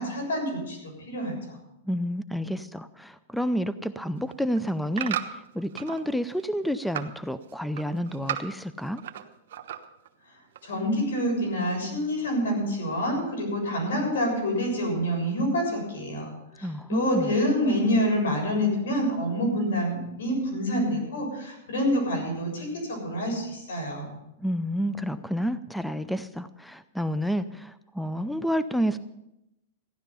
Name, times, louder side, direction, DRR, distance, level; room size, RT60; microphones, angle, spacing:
voice 1, 0.0-1.6 10.6-24.1, equal, 85° left, 1 dB, 7.2 m, -27 dB
voice 2, 1.8-9.0 16.6-17.4 24.4-29.0, equal, ahead, 14 dB, 0.4 m, -29 dB
sound 1, 4.2-6.0 6.4-7.2 7.5-9.2 9.5-10.1 10.5-10.6, right 10 dB, 70° right, 1.1 m, -35 dB
15.0 x 11.0 x 5.5 m, 0.87 s
supercardioid pair, 145°, 0 cm